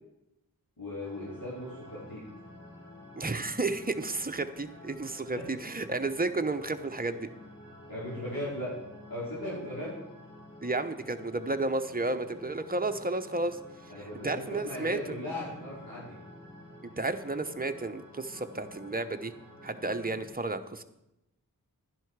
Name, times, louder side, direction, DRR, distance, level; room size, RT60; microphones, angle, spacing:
voice 1, 0.8-2.2 7.9-8.7 9.1-9.9 13.9-16.2, left 1 dB, 65° left, -8 dB, 4.5 m, -37 dB
sound 1, 1.0-20.3, left 1 dB, 45° left, 5.4 m, -50 dB
voice 2, 3.1-7.3 10.6-13.6 14.2-15.0 17.0-19.3 19.6-20.8, right 2 dB, 25° right, 8 dB, 0.9 m, -32 dB
11.5 x 10.5 x 4.7 m, 0.87 s
wide cardioid pair, 65°, 37 cm